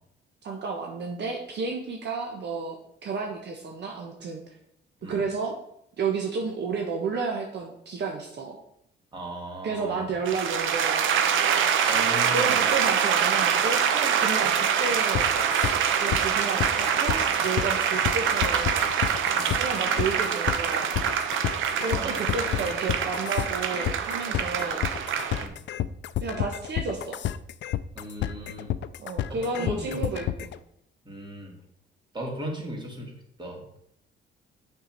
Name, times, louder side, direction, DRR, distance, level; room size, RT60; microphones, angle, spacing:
voice 1, 0.4-4.4 5.0-5.6 6.0-8.6 9.6-11.2 12.3-15.3 16.0-18.9 19.6-21.0 21.8-24.8 26.2-27.2 29.0-30.5, right 4 dB, 60° right, 1 dB, 1.2 m, -31 dB
voice 2, 9.1-10.0 11.9-12.6 14.4-14.5 19.3-19.5 21.9-22.7 25.4-25.5 27.9-28.7 29.3-30.0 31.0-31.5 32.1-33.1 33.4-33.6, equal, 25° right, -1 dB, 2.6 m, -37 dB
sound 1, 10.3-25.5, right 8 dB, 85° right, 0.8 m, -25 dB
sound 2, 15.1-30.6, left 12 dB, 65° left, 0.4 m, -30 dB
6.9 x 5.9 x 4.5 m, 0.73 s
cardioid pair, 90°, 20 cm